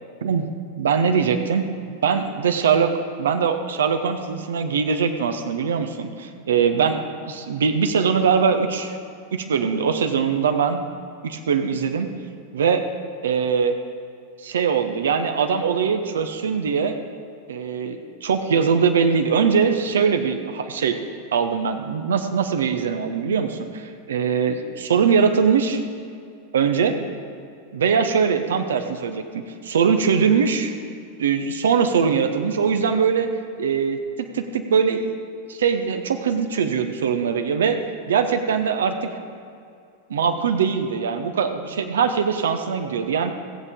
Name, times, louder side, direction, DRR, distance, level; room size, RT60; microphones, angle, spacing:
voice 1, 0.8-1.6 2.0-7.0 7.3-9.0 9.3-10.8 11.2-12.1 12.5-12.8 13.2-13.7 14.4-17.0 17.5-21.0 21.3-25.8 26.5-26.9 27.7-30.7 31.2-33.3 33.6-35.1 35.5-37.8 38.1-38.9 40.1-43.3, right 6 dB, 65° right, 8 dB, 0.9 m, -21 dB
17.5 x 8.1 x 3.7 m, 2.4 s
figure-of-eight pair, 90°, 0 cm